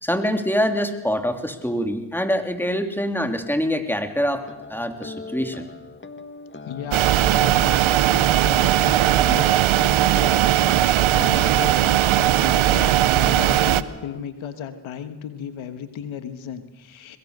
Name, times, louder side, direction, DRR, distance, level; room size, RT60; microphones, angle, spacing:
voice 1, 0.0-4.4 4.7-5.7, equal, 5° left, 6 dB, 3.1 m, -24 dB
sound 1, 4.2-14.2, left 4 dB, 25° left, 1.6 m, -39 dB
voice 2, 6.6-17.2, left 8 dB, 90° left, 10 dB, 1.4 m, -35 dB
sound 2, 6.9-13.8, right 13 dB, 85° right, 0.8 m, -18 dB
22.5 x 21.5 x 6.7 m, 1.1 s
supercardioid pair, 40°, 47 cm